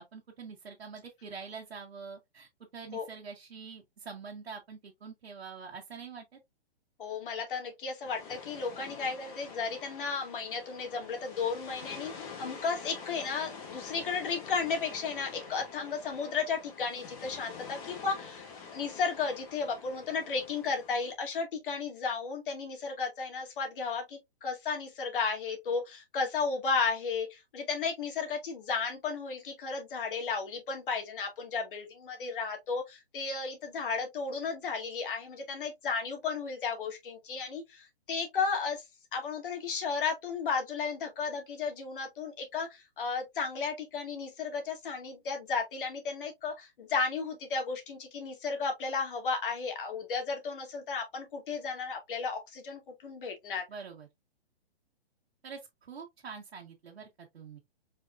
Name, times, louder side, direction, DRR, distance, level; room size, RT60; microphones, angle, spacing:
voice 1, 0.0-6.4 53.7-54.1 55.4-57.6, right 5 dB, 80° right, 1.5 m, -45 dB
voice 2, 7.0-18.5 18.7-38.8 39.1-53.6, left 5 dB, 55° left, 2.3 m, -34 dB
sound 1, 8.0-21.1, left 5 dB, 35° left, 2.0 m, -46 dB
4.9 x 4.0 x 2.4 m
hypercardioid pair, 145°, 31 cm